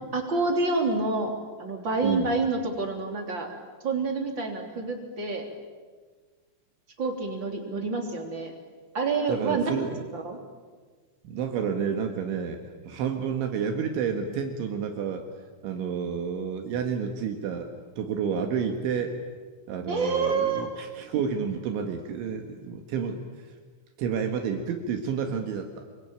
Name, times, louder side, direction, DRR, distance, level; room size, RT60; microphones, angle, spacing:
voice 1, 0.1-3.5 3.8-5.5 7.0-8.5 8.9-9.6 10.1-10.4 19.9-20.7, right 3 dB, 25° right, 2 dB, 3.2 m, -28 dB
voice 2, 2.0-2.3 9.3-10.1 11.3-15.3 15.6-19.2 19.7-23.2 24.0-25.9, right 6 dB, 70° right, 4 dB, 3.8 m, -30 dB
27.0 x 23.5 x 9.0 m, 1.4 s
omnidirectional pair, 5.8 m